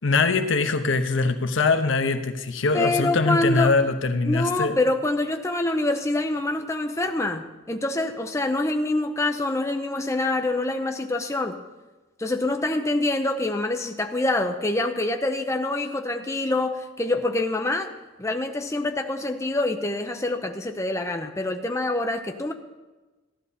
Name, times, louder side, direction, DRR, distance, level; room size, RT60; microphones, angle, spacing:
voice 1, 0.0-4.8, left 3 dB, 80° left, 8 dB, 0.9 m, -22 dB
voice 2, 2.7-3.7 4.2-11.6 12.2-17.9 18.2-22.5, left 2 dB, 15° left, 4 dB, 0.6 m, -25 dB
14.0 x 11.0 x 4.2 m, 1.2 s
head